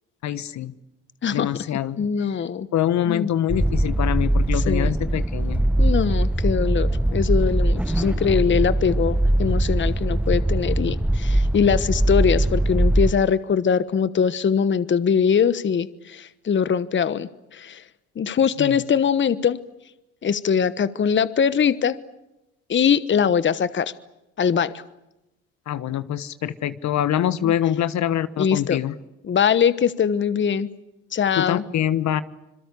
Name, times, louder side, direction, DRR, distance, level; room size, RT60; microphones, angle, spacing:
voice 1, 0.2-0.7 1.3-2.4 2.7-5.6 18.6-18.8 25.7-28.9 31.4-32.2, left 11 dB, 60° left, 15 dB, 1.3 m, -25 dB
voice 2, 2.0-2.7 3.1-3.3 4.5-4.9 5.8-17.8 18.2-19.6 20.2-22.0 22.7-23.9 24.4-24.8 27.4-27.5 28.4-28.8 29.3-30.7 31.1-31.6, left 7 dB, 35° left, 16 dB, 1.2 m, -22 dB
sound 1, 3.5-13.1, right 1 dB, 5° right, 1.0 m, -21 dB
26.5 x 22.5 x 8.4 m, 0.92 s
supercardioid pair, 75°, 32 cm